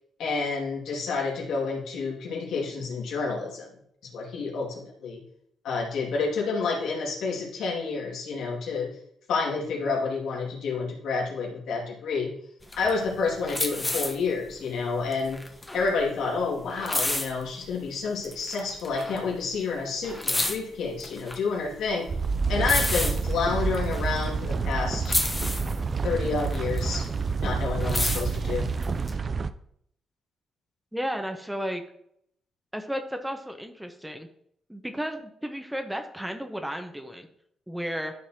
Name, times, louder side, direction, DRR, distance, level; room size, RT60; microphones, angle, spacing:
voice 1, 0.2-3.7 4.0-5.2 5.6-9.0 9.3-12.3 12.8-15.4 15.7-22.1 22.5-25.2 26.0-27.0 27.4-28.7, left 4 dB, 75° left, -3 dB, 2.4 m, -29 dB
sound 1, 12.6-17.9 18.2-19.6 19.8-24.7 25.0-27.3 27.6-29.1, left 2 dB, 20° left, 1.2 m, -32 dB
sound 2, 22.1-29.5, right 4 dB, 50° right, 0.5 m, -28 dB
voice 2, 30.9-31.8 32.7-34.3 34.7-37.3 37.7-38.1, equal, 5° right, 5 dB, 1.2 m, -33 dB
12.0 x 4.6 x 3.0 m, 0.71 s
hypercardioid pair, 45°, 0 cm